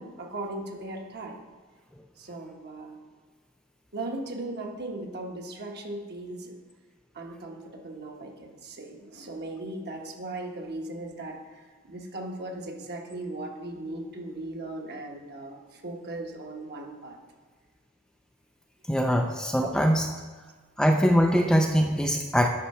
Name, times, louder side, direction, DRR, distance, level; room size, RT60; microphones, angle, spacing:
voice 1, 0.0-1.4 2.2-3.0 3.9-6.6 7.1-17.2, right 2 dB, 50° right, 1 dB, 1.2 m, -38 dB
voice 2, 18.9-20.1 20.8-22.5, equal, 5° left, 3 dB, 0.4 m, -22 dB
10.0 x 5.7 x 4.3 m, 1.4 s
head